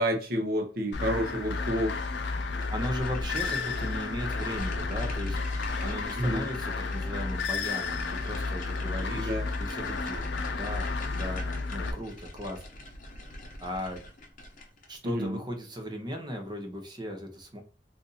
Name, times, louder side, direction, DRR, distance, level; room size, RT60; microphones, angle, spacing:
voice 1, 0.0-1.9 6.2-6.4 9.2-9.4 15.0-15.4, equal, 55° right, 4 dB, 0.8 m, -29 dB
sound 1, 0.9-11.9, left 4 dB, 75° left, 0.6 m, -32 dB
sound 2, 2.6-15.0, left 1 dB, 50° left, 0.8 m, -44 dB
voice 2, 2.7-5.4 5.8-9.3 9.6-12.8 13.6-14.0 14.9-17.6, equal, 25° right, 4 dB, 0.7 m, -37 dB
2.6 x 2.5 x 3.9 m, 0.35 s
head